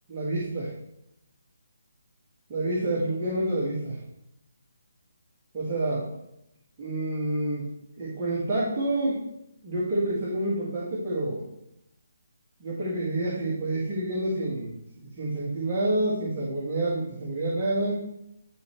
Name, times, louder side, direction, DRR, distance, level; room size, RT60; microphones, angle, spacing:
voice 1, 0.1-0.7 2.5-4.0 5.5-6.0 6.8-7.7 8.0-9.2 9.6-11.4 12.6-14.7 15.2-18.0, right 1 dB, 20° right, -8 dB, 2.0 m, -28 dB
10.5 x 4.6 x 3.2 m, 0.82 s
figure-of-eight pair, 145°, 0 cm